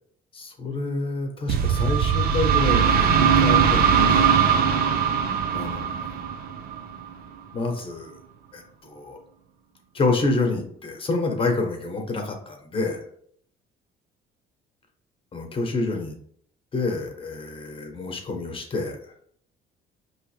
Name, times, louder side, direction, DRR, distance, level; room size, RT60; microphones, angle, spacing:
voice 1, 0.3-4.3 5.5-6.2 7.5-8.2 8.5-9.2 9.9-13.0 15.3-16.2 16.7-19.1, left 3 dB, 30° left, 3 dB, 1.2 m, -28 dB
sound 1, 1.5-7.1, right 7 dB, 60° right, 0.6 m, -20 dB
5.1 x 3.2 x 3.2 m, 0.63 s
cardioid pair, 110°, 17 cm